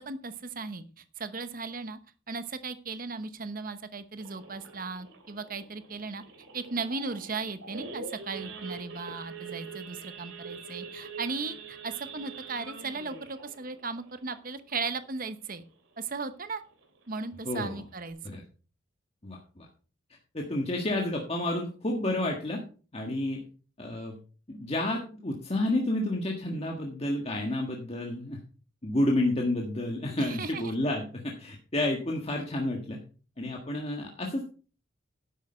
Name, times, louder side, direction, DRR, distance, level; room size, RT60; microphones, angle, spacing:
voice 1, 0.0-2.0 2.3-6.2 6.5-15.6 16.0-16.6 17.1-18.4 30.2-30.7, right 4 dB, 45° right, 11 dB, 1.0 m, -36 dB
Idling / Accelerating revving vroom / Sawing, 4.2-15.3 15.7-15.9 16.1-16.2 16.7-17.0 17.5-17.6 17.8-18.1, right 4 dB, 85° right, 2.8 m, -44 dB
voice 2, 17.4-17.8 18.2-18.4 19.2-19.7 20.3-22.6 22.9-23.4 23.8-24.1 24.5-28.4 28.8-33.0 33.4-34.4, left 1 dB, 30° left, 0 dB, 1.6 m, -30 dB
11.0 x 8.3 x 4.4 m, 0.37 s
head